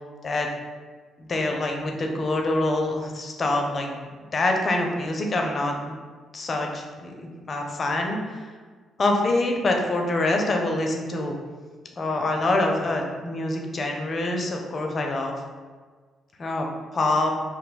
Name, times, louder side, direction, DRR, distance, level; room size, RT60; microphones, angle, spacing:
voice 1, 1.2-6.0 6.3-8.5 9.0-11.4 12.0-15.3 16.4-16.7 16.9-17.3, left 2 dB, 40° left, 2 dB, 0.5 m, -25 dB
2.5 x 2.2 x 4.0 m, 1.5 s
cardioid pair, 95°, 0 cm